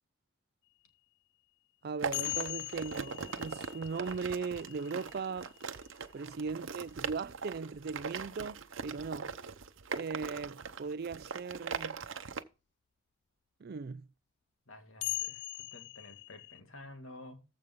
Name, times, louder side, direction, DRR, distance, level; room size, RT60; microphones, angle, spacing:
voice 1, 1.8-5.5 6.1-9.3 9.9-12.0 13.6-14.1, right 5 dB, 50° right, 0.4 m, -38 dB
sound 1, 2.0-12.4, right 5 dB, 75° right, 0.8 m, -41 dB
sound 2, 2.1-6.4 8.2-8.3 11.3-11.4 15.0-16.6, left 18 dB, 55° left, 0.4 m, -41 dB
voice 2, 14.7-17.4, left 1 dB, 85° left, 2.2 m, -51 dB
14.5 x 5.3 x 3.7 m
head